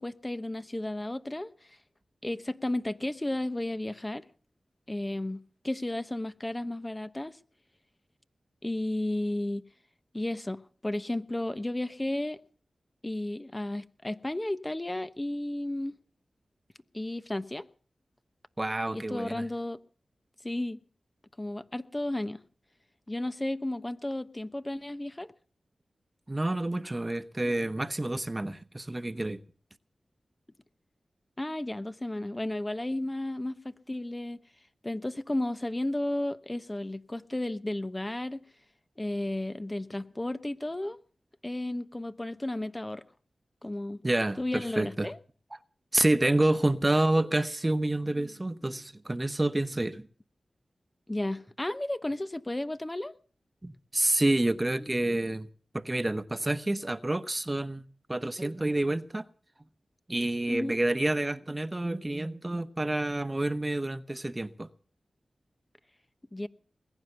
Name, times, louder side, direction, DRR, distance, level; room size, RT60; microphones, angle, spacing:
voice 1, 0.0-1.8 2.2-4.3 4.9-7.4 8.6-9.7 10.1-12.4 13.0-16.0 16.9-17.6 18.9-19.8 20.4-20.8 21.4-22.4 23.1-25.3 31.4-34.4 34.8-38.4 39.0-41.0 41.4-43.0 43.6-44.0 44.4-45.2 51.1-53.1 60.5-60.8 66.3-66.5, left 1 dB, 25° left, 1.0 m, -33 dB
voice 2, 18.6-19.5 26.3-29.4 44.0-45.1 45.9-50.1 53.6-55.5 55.7-59.3 60.1-64.7, right 1 dB, 25° right, 1.1 m, -28 dB
21.0 x 9.6 x 6.9 m
cardioid pair, 40°, 0 cm